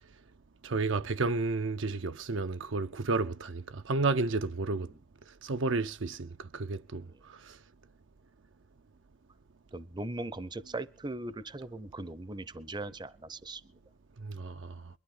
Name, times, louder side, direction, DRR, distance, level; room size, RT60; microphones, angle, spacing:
voice 1, 0.6-4.9 5.4-7.6 14.2-14.8, right 3 dB, 65° right, 0.6 m, -32 dB
voice 2, 9.7-13.6, right 2 dB, 20° right, 0.7 m, -39 dB
22.0 x 12.0 x 3.9 m
head